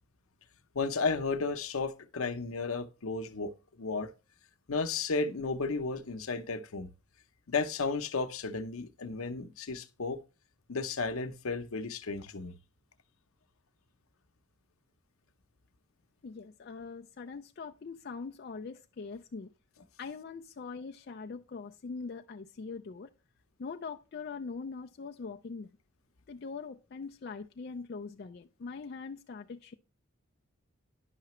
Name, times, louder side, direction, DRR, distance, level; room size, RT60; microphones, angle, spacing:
voice 1, 0.7-3.5 3.8-4.1 4.7-6.9 7.5-10.2 10.7-12.6, left 4 dB, 80° left, 0.7 m, -33 dB
voice 2, 16.2-19.5 20.0-23.1 23.6-25.7 26.3-29.7, left 4 dB, 45° left, 0.4 m, -42 dB
9.9 x 5.8 x 3.0 m
head